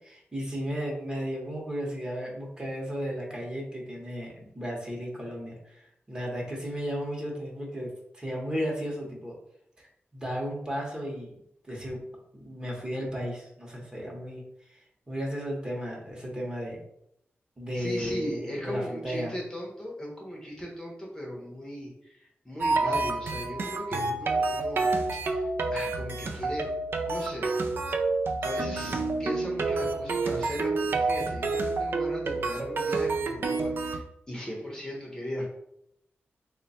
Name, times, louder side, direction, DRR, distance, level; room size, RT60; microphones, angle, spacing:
voice 1, 0.0-7.9 8.1-9.3 9.8-9.9 10.1-11.3 11.6-12.0 12.3-16.8 17.6-19.3, equal, 20° right, -2 dB, 0.8 m, -34 dB
voice 2, 17.7-26.7 27.1-27.5 28.4-35.6, equal, 15° left, -2 dB, 0.7 m, -37 dB
sound 1, 22.6-34.0, right 3 dB, 60° right, 0.4 m, -29 dB
3.3 x 2.2 x 4.0 m, 0.75 s
wide cardioid pair, 155°, 4 cm